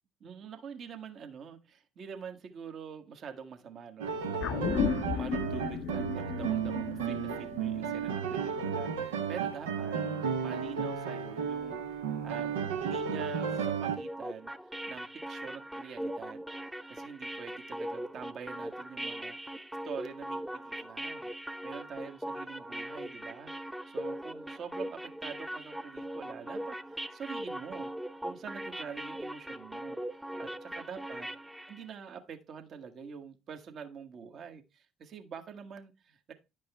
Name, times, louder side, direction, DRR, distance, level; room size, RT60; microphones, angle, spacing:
voice 1, 0.2-10.0 10.4-16.4 16.9-21.3 21.6-27.9 28.2-30.0 30.4-31.3 31.7-36.3, right 6 dB, 55° right, 1.4 m, -45 dB
sound 1, 4.0-14.0, right 7 dB, 85° right, 0.9 m, -33 dB
sound 2, 4.4-9.0 9.3-9.4, left 8 dB, 60° left, 0.6 m, -35 dB
sound 3, 14.0-31.8, right 1 dB, 5° right, 0.8 m, -40 dB
10.5 x 5.3 x 3.4 m
hypercardioid pair, 55°, 0 cm